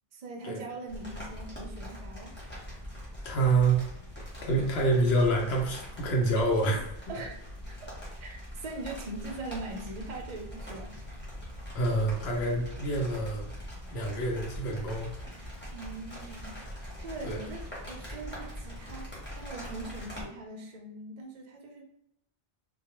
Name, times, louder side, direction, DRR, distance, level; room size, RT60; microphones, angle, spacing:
voice 1, 0.1-2.3 6.7-6.8 7.1-7.4 8.2-11.0 15.7-16.5 17.0-21.8, right 2 dB, 55° right, 1 dB, 0.5 m, -41 dB
sound 1, 0.9-20.2, equal, 10° left, 0.7 m, -42 dB
voice 2, 3.2-3.8 4.4-6.9 11.7-13.5 13.9-15.1 17.2-17.4, right 2 dB, 80° left, -1 dB, 0.9 m, -27 dB
2.2 x 2.1 x 2.9 m, 0.77 s
omnidirectional pair, 1.1 m